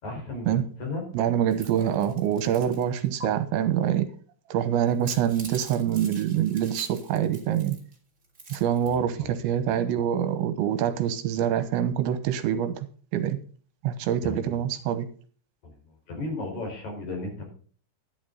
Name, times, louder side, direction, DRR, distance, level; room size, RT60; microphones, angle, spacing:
voice 1, 0.0-1.0 8.8-9.3 14.2-14.6 15.6-15.7 16.1-17.5, left 2 dB, 40° left, 5.8 m, -35 dB
voice 2, 1.1-4.1 4.5-7.8 8.5-12.9 13.1-13.4 13.8-15.1, right 9 dB, 80° right, 3.4 m, -25 dB
sound 1, 1.5-2.8 3.2-3.3 4.9-7.9 8.2-9.0, right 3 dB, 20° right, 2.7 m, -44 dB
12.5 x 11.0 x 4.0 m
omnidirectional pair, 5.3 m